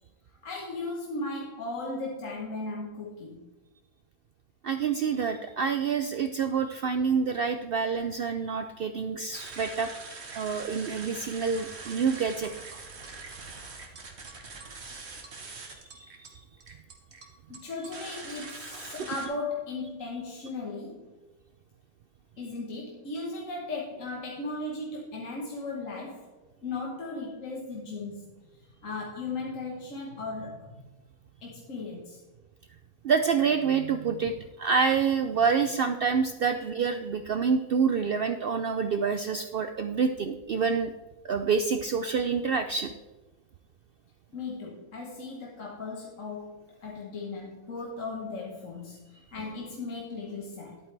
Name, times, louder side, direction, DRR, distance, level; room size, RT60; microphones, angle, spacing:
voice 1, 0.4-3.5 8.9-9.1 17.5-21.1 22.4-26.3 26.6-28.4 28.8-30.9 31.4-32.2 34.2-34.3 44.3-50.8, left 3 dB, 65° left, -2 dB, 1.6 m, -37 dB
voice 2, 4.6-9.9 10.3-12.5 15.7-16.2 33.0-40.9 41.2-42.9, right 6 dB, 70° right, 8 dB, 0.5 m, -27 dB
sound 1, 9.3-19.3, right 3 dB, 50° right, 1.5 m, -43 dB
11.0 x 8.9 x 3.3 m, 1.2 s
omnidirectional pair, 1.5 m